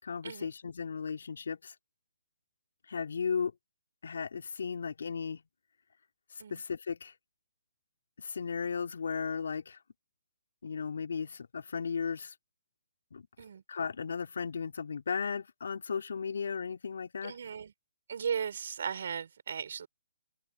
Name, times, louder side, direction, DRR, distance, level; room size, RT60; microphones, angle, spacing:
voice 1, 0.0-1.7 2.9-3.5 4.0-5.4 6.5-7.1 8.2-9.8 10.6-12.3 13.1-13.3 13.7-17.4, left 6 dB, 70° left, 3.5 m, -35 dB
voice 2, 17.2-17.7 18.1-19.9, right 7 dB, 60° right, 6.0 m, -36 dB
hypercardioid pair, 140°, 0 cm